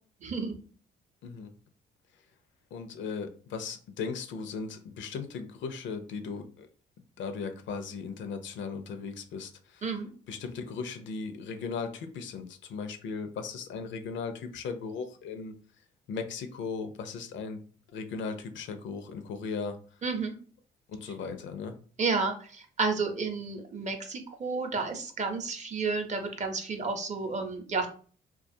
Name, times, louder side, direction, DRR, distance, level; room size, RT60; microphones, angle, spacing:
voice 1, 0.2-0.6 9.8-10.1 20.0-20.3 22.0-27.9, right 4 dB, 35° right, 5 dB, 0.6 m, -31 dB
voice 2, 2.7-6.7 7.2-9.8 10.3-15.5 16.1-17.6 17.9-19.8 20.9-21.7, left 5 dB, 70° left, 7 dB, 0.5 m, -37 dB
2.4 x 2.3 x 2.6 m, 0.42 s
cardioid pair, 90°, 20 cm